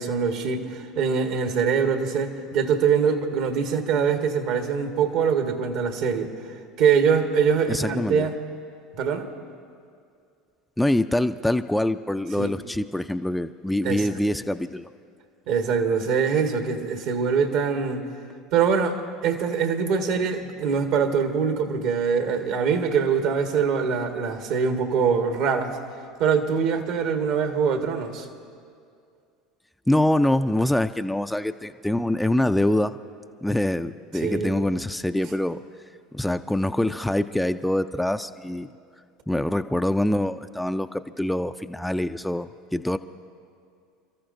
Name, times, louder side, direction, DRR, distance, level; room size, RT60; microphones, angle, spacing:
voice 1, 0.0-6.3 6.8-8.3 9.0-9.3 12.4-12.5 13.8-14.1 15.5-18.1 18.5-25.8 26.2-28.3 34.2-34.6, right 6 dB, 65° right, 5 dB, 1.4 m, -23 dB
voice 2, 7.7-8.3 10.8-14.9 29.9-33.0 33.4-35.6 36.1-38.7 39.3-43.0, left 1 dB, 5° left, 9 dB, 0.4 m, -24 dB
29.5 x 14.0 x 2.6 m, 2.3 s
hypercardioid pair, 80°, 0 cm